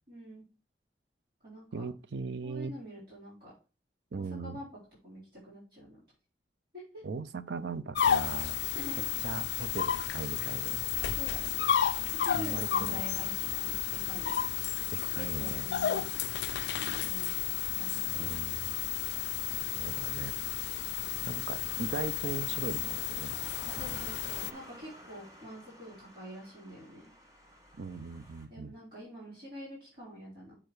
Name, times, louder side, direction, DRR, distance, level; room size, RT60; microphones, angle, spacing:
voice 1, 0.1-0.4 1.4-1.9 2.4-3.5 4.1-4.7 5.0-6.0 6.9-7.0 8.7-9.1 11.0-11.6 12.0-14.5 15.1-16.0 16.7-17.3 17.8-18.4 23.7-27.0 28.5-30.5, equal, 55° right, 4.0 m, -46 dB
voice 2, 1.7-2.7 4.1-4.6 7.0-8.6 9.2-10.8 12.3-13.0 14.9-15.7 18.1-18.7 19.7-20.3 21.3-23.4 23.9-24.0 27.8-28.7, right 4 dB, 80° right, 0.5 m, -39 dB
sound 1, 7.9-24.5, left 11 dB, 75° left, 0.3 m, -32 dB
sound 2, 15.7-28.5, equal, 20° right, 1.4 m, -55 dB
7.4 x 4.7 x 4.8 m
head